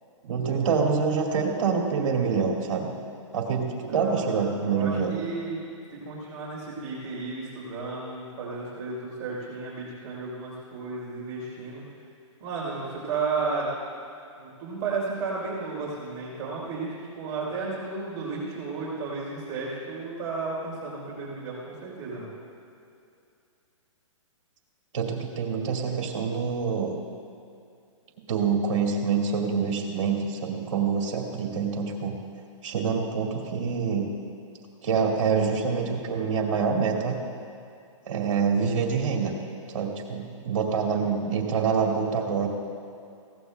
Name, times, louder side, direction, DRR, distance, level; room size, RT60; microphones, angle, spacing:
voice 1, 0.2-2.9 3.3-5.1 24.9-27.0 28.3-32.2 32.6-34.1 34.8-37.2 38.1-39.3 39.7-42.5, right 5 dB, 60° right, -1 dB, 2.2 m, -26 dB
voice 2, 3.9-5.6 5.9-11.8 12.4-13.7 14.4-22.4, right 4 dB, 25° right, -7 dB, 3.8 m, -33 dB
21.0 x 16.5 x 2.3 m, 2.5 s
hypercardioid pair, 170°, 17 cm